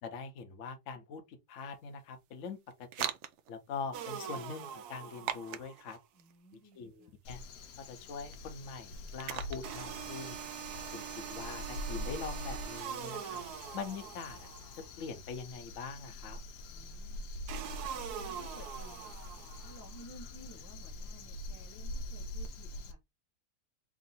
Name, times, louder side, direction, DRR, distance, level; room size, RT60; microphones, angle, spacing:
voice 1, 0.0-3.1 3.5-6.0 6.7-7.4 7.8-10.4 10.9-13.4 13.7-16.4, left 5 dB, 60° left, 1.0 m, -43 dB
sound 1, 1.5-10.1, right 10 dB, 90° right, 0.6 m, -44 dB
sound 2, 3.9-5.9 9.6-14.9 17.5-19.9, right 9 dB, 75° right, 1.1 m, -43 dB
voice 2, 6.1-7.2 16.6-17.3 17.9-19.1 19.6-23.0, equal, 25° left, 0.4 m, -56 dB
Crow, 7.2-22.9, left 1 dB, 80° left, 1.2 m, -44 dB
3.6 x 2.5 x 3.9 m
omnidirectional pair, 1.8 m